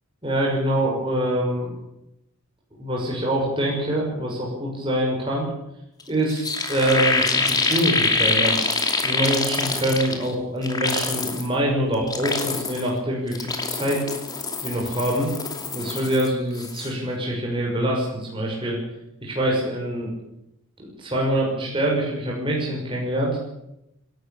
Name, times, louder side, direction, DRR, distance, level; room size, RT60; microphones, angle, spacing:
voice 1, 0.2-1.7 2.7-5.5 6.1-8.6 9.0-14.1 14.6-15.3 15.7-18.8 19.2-20.1 20.8-23.4, right 1 dB, 20° right, -3 dB, 6.1 m, -25 dB
sound 1, 6.0-6.1 6.3-10.3 10.6-11.5 11.9-12.9 13.3-16.3 16.5-16.9, left 3 dB, 15° left, 2.7 m, -25 dB
25.5 x 12.0 x 8.8 m, 0.84 s
head